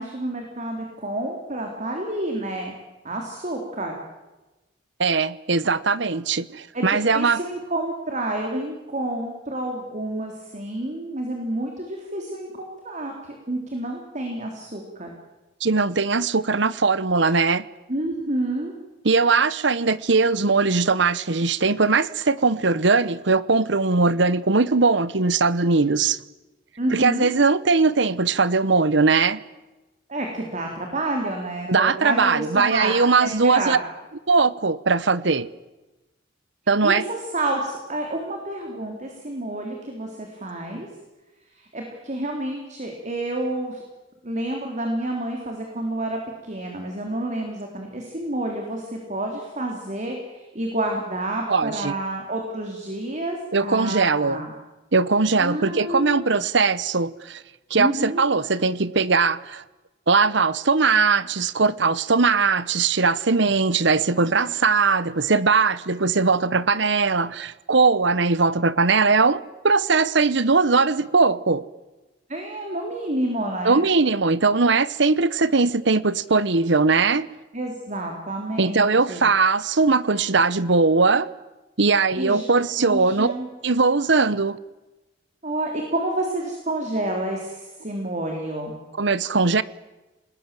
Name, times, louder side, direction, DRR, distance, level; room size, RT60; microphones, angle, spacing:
voice 1, 0.0-2.8 3.0-3.9 6.7-15.1 17.9-18.7 26.8-27.3 30.1-32.9 33.2-33.8 36.8-40.9 41.5-43.8 44.2-54.5 55.4-56.2 57.8-58.2 72.3-73.8 77.5-79.3 82.2-82.5 82.8-83.5 85.4-88.8, right 1 dB, 40° right, 3.7 m, -29 dB
voice 2, 5.0-7.4 15.6-17.7 19.0-26.2 26.9-29.4 31.7-33.8 34.3-35.5 36.7-37.0 51.5-51.9 53.5-54.4 54.9-57.4 57.7-59.6 60.1-71.7 73.6-77.3 78.6-81.3 81.8-83.3 83.6-84.6 89.0-89.6, right 4 dB, 65° right, 1.0 m, -20 dB
29.0 x 20.5 x 7.7 m
head